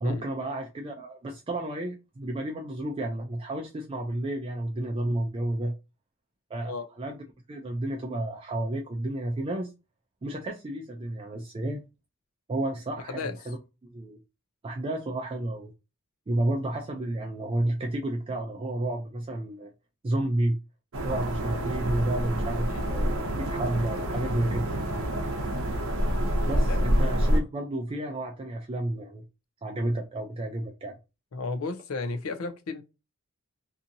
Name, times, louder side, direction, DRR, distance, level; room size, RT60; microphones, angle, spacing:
voice 1, 0.0-5.7 6.5-7.2 7.5-9.7 10.2-11.8 12.5-13.6 13.8-14.2 14.6-15.7 16.3-19.7 20.0-20.6 21.0-24.7 26.4-29.2 29.6-31.0, right 1 dB, 25° right, 0.4 m, -31 dB
sound 1, 20.9-27.4, equal, 70° right, 0.7 m, -27 dB
voice 2, 31.3-32.8, left 3 dB, 85° left, 0.5 m, -33 dB
2.7 x 2.5 x 2.6 m
head